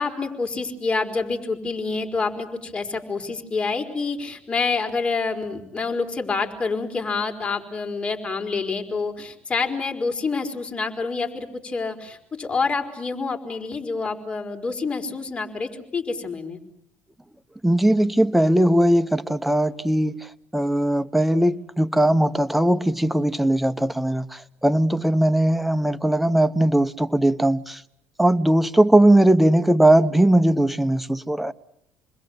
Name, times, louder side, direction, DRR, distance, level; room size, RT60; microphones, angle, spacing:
voice 1, 0.0-16.6, left 4 dB, 20° left, 4.8 m, -27 dB
voice 2, 17.6-27.8 28.2-31.5, right 1 dB, 5° right, 1.1 m, -19 dB
29.0 x 21.5 x 8.1 m
cardioid pair, 120°, 5 cm